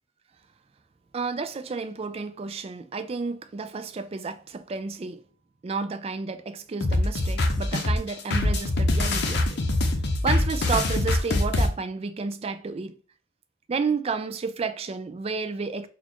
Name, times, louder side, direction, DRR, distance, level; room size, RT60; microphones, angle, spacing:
voice 1, 1.1-5.2 5.6-9.6 9.8-9.9 10.2-12.9 13.7-15.9, right 4 dB, 30° right, 0.3 m, -31 dB
sound 1, 6.8-11.7, left 2 dB, 55° left, 0.6 m, -24 dB
4.1 x 2.4 x 2.9 m
head